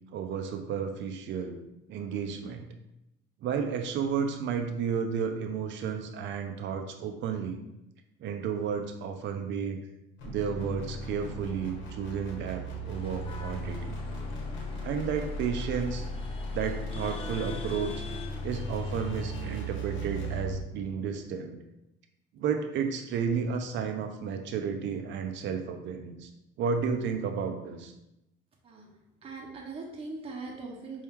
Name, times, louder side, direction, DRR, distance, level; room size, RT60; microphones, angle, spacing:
voice 1, 0.1-1.6 1.9-2.7 3.4-7.6 8.2-9.8 10.2-14.0 14.8-16.1 16.5-18.0 18.4-21.6 22.3-26.3 26.6-27.9, right 6 dB, 65° right, 5 dB, 0.6 m, -32 dB
sound 1, 10.2-20.7, equal, 70° left, 1.1 m, -37 dB
sound 2, 12.9-19.7, left 3 dB, 25° left, 0.6 m, -45 dB
voice 2, 29.2-31.0, right 3 dB, 30° right, -1 dB, 0.8 m, -40 dB
4.5 x 3.0 x 3.6 m, 0.88 s
cardioid pair, 130°, 20 cm